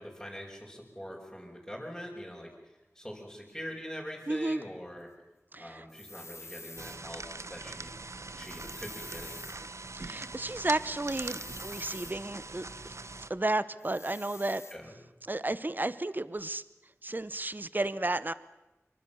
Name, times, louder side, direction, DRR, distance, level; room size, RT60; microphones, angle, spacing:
voice 1, 0.0-2.5 3.0-5.1 5.6-9.4 14.7-14.9, equal, 5° left, -5 dB, 5.3 m, -43 dB
voice 2, 4.3-4.6 5.5-5.8 9.9-12.6 13.3-14.6 15.2-16.6 17.0-18.3, right 2 dB, 35° right, 16 dB, 0.9 m, -32 dB
sound 1, 5.9-7.0 8.4-9.6 11.1-12.1 13.8-14.8, left 2 dB, 65° left, 2.6 m, -47 dB
sound 2, 6.8-13.3, right 3 dB, 65° right, 1.0 m, -42 dB
24.5 x 24.0 x 7.1 m, 0.99 s
wide cardioid pair, 50°, 5 cm